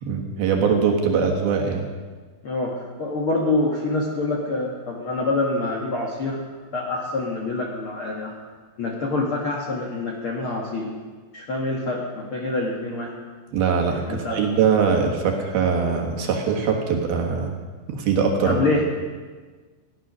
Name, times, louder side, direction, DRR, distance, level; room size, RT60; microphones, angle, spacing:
voice 1, 0.0-1.9 13.5-17.5 17.9-18.6, right 6 dB, 65° right, 1 dB, 3.1 m, -22 dB
voice 2, 2.4-6.4 6.7-8.3 8.8-10.9 11.3-13.1 14.1-14.4 18.4-18.9, left 2 dB, 65° left, -1 dB, 1.3 m, -26 dB
16.5 x 11.0 x 6.2 m, 1.4 s
omnidirectional pair, 5.1 m